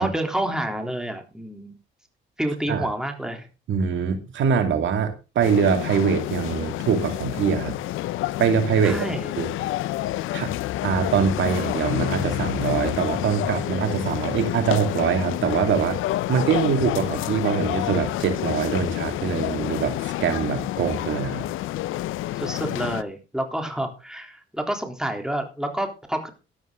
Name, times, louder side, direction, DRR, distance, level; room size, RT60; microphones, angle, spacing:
voice 1, 0.0-1.8 2.4-3.5 8.8-9.3 9.6-9.7 22.3-26.3, right 1 dB, 5° right, 4 dB, 3.4 m, -29 dB
voice 2, 3.7-7.8 8.4-9.0 9.4-9.5 10.3-10.5 10.8-16.0 16.3-21.5, right 7 dB, 70° right, 6 dB, 2.4 m, -23 dB
sound 1, 5.4-23.0, left 15 dB, 85° left, 0.6 m, -28 dB
12.5 x 12.0 x 3.9 m, 0.30 s
cardioid pair, 90°, 20 cm